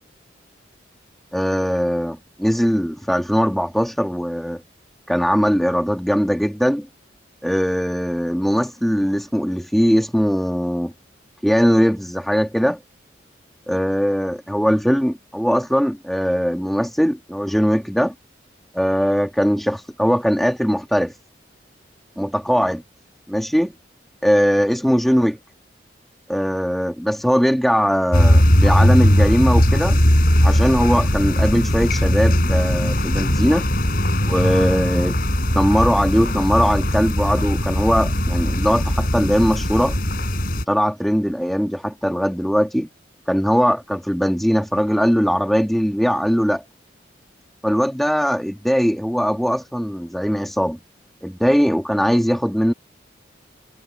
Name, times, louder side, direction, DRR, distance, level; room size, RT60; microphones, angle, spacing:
voice 1, 1.3-4.6 5.1-6.9 7.4-10.9 11.4-12.8 13.7-18.1 18.7-21.1 22.2-22.8 23.3-23.7 24.2-25.4 26.3-30.0 30.4-33.7 34.3-35.2 35.5-39.9 40.7-42.9 43.3-46.6 47.6-50.8 51.2-52.7, equal, ahead, 2.4 m, -20 dB
sound 1, 28.1-40.6, equal, 50° left, 6.4 m, -18 dB
head